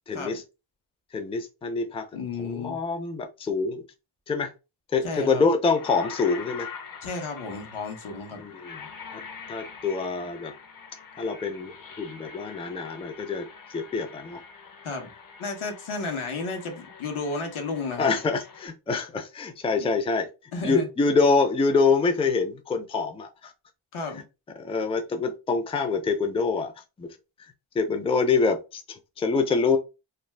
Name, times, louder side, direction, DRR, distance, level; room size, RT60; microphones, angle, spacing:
voice 1, 0.1-0.4 1.1-2.1 2.4-3.8 4.3-4.5 4.9-6.7 8.4-9.2 9.5-10.5 11.2-14.4 18.0-20.3 20.6-23.5 24.6-26.7 27.0-29.8, left 4 dB, 15° left, 0.4 m, -26 dB
voice 2, 2.1-2.8 5.0-5.4 7.0-8.4 14.8-15.1 15.4-18.1 19.8-19.9 20.5-20.9 23.9-24.2, left 3 dB, 75° left, 1.0 m, -32 dB
sound 1, 5.8-18.7, left 6 dB, 45° left, 0.7 m, -44 dB
2.5 x 2.3 x 3.2 m
wide cardioid pair, 90°, 49 cm